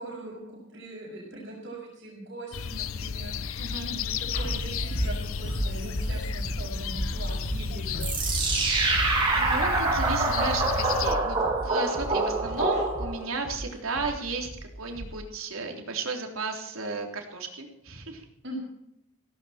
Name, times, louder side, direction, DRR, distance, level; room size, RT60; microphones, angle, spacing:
voice 1, 0.0-3.3 3.8-8.2 18.4-18.6, right 1 dB, 55° right, -6 dB, 6.3 m, -41 dB
sound 1, 2.5-11.1, left 6 dB, 75° left, 0.7 m, -33 dB
voice 2, 3.6-3.9 9.4-14.5 14.8-18.2, right 3 dB, 80° right, 2 dB, 3.6 m, -34 dB
sound 2, 4.3-15.2, right 1 dB, 55° left, 7.4 m, -35 dB
sound 3, 8.0-13.3, right 3 dB, 25° right, 6.6 m, -26 dB
17.0 x 16.5 x 4.4 m, 0.79 s
head